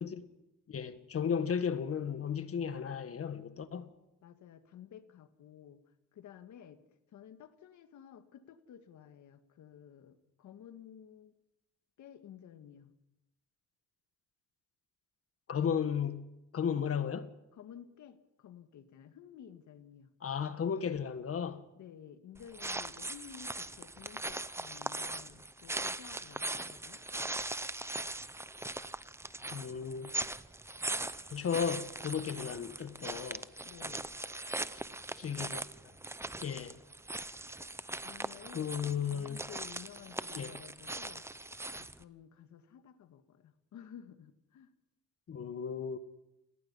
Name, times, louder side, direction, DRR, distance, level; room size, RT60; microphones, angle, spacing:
voice 1, 0.7-3.9 15.5-16.3 16.5-17.3 20.2-21.6 29.5-30.1 31.3-33.5 35.2-35.6 36.4-36.8 38.5-39.4 40.3-40.6 45.3-46.0, left 7 dB, 50° left, 1.7 m, -34 dB
voice 2, 4.2-5.8 6.1-6.8 7.1-11.4 12.0-12.9 17.5-20.1 21.8-27.0 33.6-34.1 35.4-35.6 38.0-41.3 41.8-44.7, left 9 dB, 75° left, 1.8 m, -53 dB
sound 1, 22.4-42.0, right 2 dB, 10° right, 0.8 m, -40 dB
30.0 x 18.0 x 5.6 m
cardioid pair, 90°, 30 cm